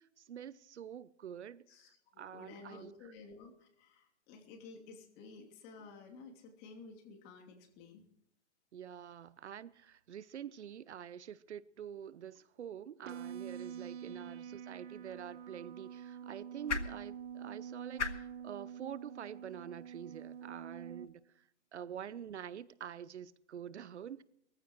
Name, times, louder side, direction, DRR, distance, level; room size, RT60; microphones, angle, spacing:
voice 1, 0.0-1.6 2.2-2.9 8.7-21.4 21.7-24.2, right 9 dB, 75° right, 0.9 m, -47 dB
voice 2, 1.7-8.1 14.1-14.2, left 4 dB, 30° left, 3.0 m, -53 dB
sound 1, 13.0-21.1, right 8 dB, 45° right, 1.4 m, -47 dB
sound 2, 14.9-21.1, left 5 dB, 85° left, 1.8 m, -45 dB
21.0 x 15.0 x 3.1 m
hypercardioid pair, 140°, 35 cm